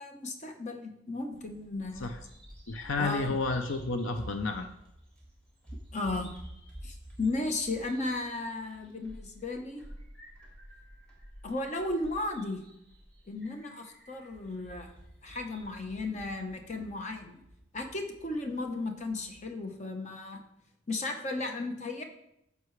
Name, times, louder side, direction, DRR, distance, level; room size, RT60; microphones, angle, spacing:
voice 1, 0.0-2.1 2.9-3.4 5.9-6.3 6.8-9.8 11.4-12.7 13.3-14.9 15.2-17.4 17.7-20.4 20.9-22.0, left 2 dB, 35° left, 4 dB, 0.9 m, -35 dB
Bird vocalization bird call bird song, 1.3-19.4, equal, 5° left, 1.9 m, -50 dB
voice 2, 2.7-4.7, left 3 dB, 65° left, 6 dB, 0.6 m, -31 dB
9.5 x 6.8 x 3.2 m, 0.80 s
head